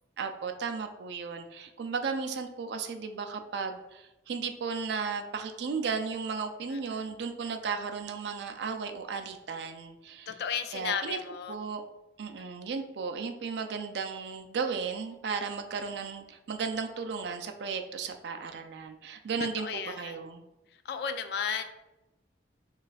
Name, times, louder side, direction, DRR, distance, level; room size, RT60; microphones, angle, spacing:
voice 1, 0.2-10.3 10.7-11.2 11.5-11.8 12.2-19.7 20.0-20.4, right 5 dB, 65° right, 6 dB, 0.4 m, -35 dB
voice 2, 6.7-7.0 10.3-11.6 19.6-20.2 20.8-21.6, left 7 dB, 60° left, 9 dB, 0.3 m, -34 dB
3.1 x 2.4 x 4.0 m, 0.95 s
head